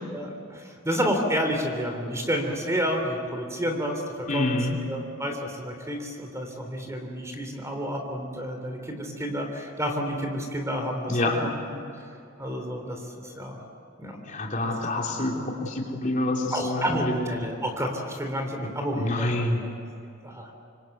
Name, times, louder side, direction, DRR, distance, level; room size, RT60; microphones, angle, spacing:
voice 1, 0.1-4.6 4.9-11.8 12.4-13.6 14.0-14.2 16.5-19.5 20.2-20.5, equal, 15° right, 4 dB, 3.4 m, -30 dB
voice 2, 4.3-4.8 11.1-11.5 14.3-17.1 18.9-19.7, left 1 dB, 40° left, -1 dB, 3.8 m, -27 dB
27.0 x 24.5 x 8.2 m, 2.6 s
head